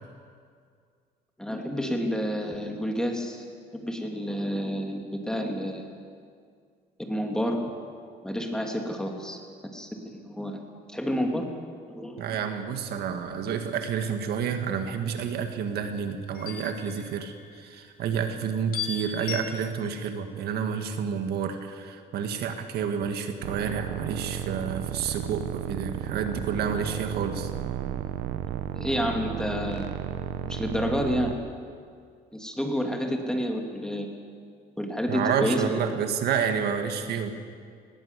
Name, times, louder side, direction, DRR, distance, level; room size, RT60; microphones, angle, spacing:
voice 1, 1.4-3.4 3.7-5.9 7.0-7.6 8.2-9.4 9.7-10.6 10.9-11.5 11.9-12.3 28.7-29.9 30.4-31.3 32.3-34.1 34.8-36.0, equal, 5° left, 2 dB, 2.9 m, -29 dB
voice 2, 12.2-27.5 35.1-37.3, right 7 dB, 70° right, 6 dB, 1.8 m, -29 dB
sound 1, 13.6-14.2 16.3-17.7 18.7-19.4, left 7 dB, 60° left, 2.4 m, -37 dB
sound 2, 23.4-31.3, right 10 dB, 85° right, 1.0 m, -33 dB
20.0 x 17.0 x 8.3 m, 2.2 s
cardioid pair, 110°, 17 cm